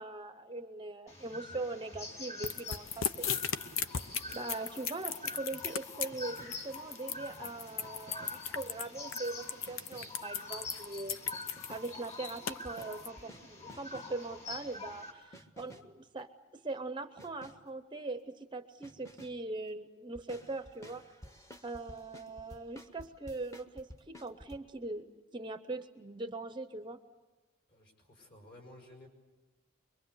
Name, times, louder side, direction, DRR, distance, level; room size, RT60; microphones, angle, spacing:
voice 1, 0.0-3.3 4.3-11.2 11.7-21.0 21.6-27.0, right 2 dB, 20° right, 9 dB, 0.7 m, -41 dB
sound 1, 1.1-15.1, left 3 dB, 30° left, 4.8 m, -46 dB
sound 2, 2.4-13.1, left 7 dB, 70° left, 0.8 m, -37 dB
sound 3, 6.1-6.8 7.8-8.6 9.7-10.3 11.3-12.0 12.6-14.2 15.3-16.0 17.2-17.7 18.8-19.4 20.1-24.6, equal, 15° left, 1.1 m, -54 dB
voice 2, 27.7-29.1, left 1 dB, 50° left, 3 dB, 5.9 m, -54 dB
24.0 x 23.5 x 8.2 m, 1.2 s
head